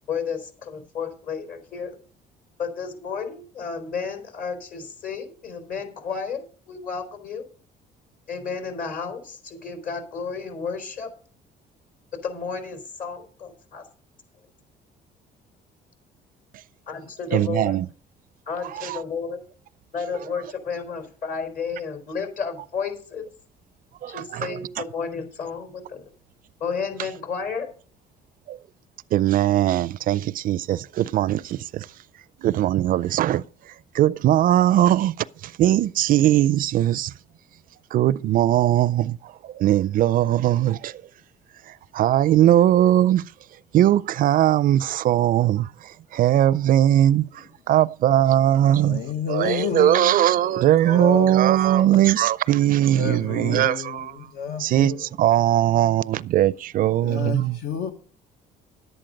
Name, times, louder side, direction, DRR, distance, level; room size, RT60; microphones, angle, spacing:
voice 1, 0.1-1.9 2.6-7.4 8.3-11.1 12.2-13.8 16.9-17.8 18.5-19.4 19.9-23.3 24.1-26.0 26.6-27.7, left 5 dB, 55° left, 3.9 m, -32 dB
voice 2, 17.3-17.9 18.7-19.0 24.0-24.6 28.5-28.6 29.1-31.9 32.4-37.1 37.9-41.0 41.7-43.2 43.7-49.0 49.3-54.3 54.6-57.6, right 12 dB, 55° right, 0.4 m, -20 dB
voice 3, 48.8-51.9 52.9-55.1 57.0-57.9, left 7 dB, 75° left, 1.2 m, -31 dB
11.0 x 8.9 x 5.1 m
cardioid pair, 110°, 17 cm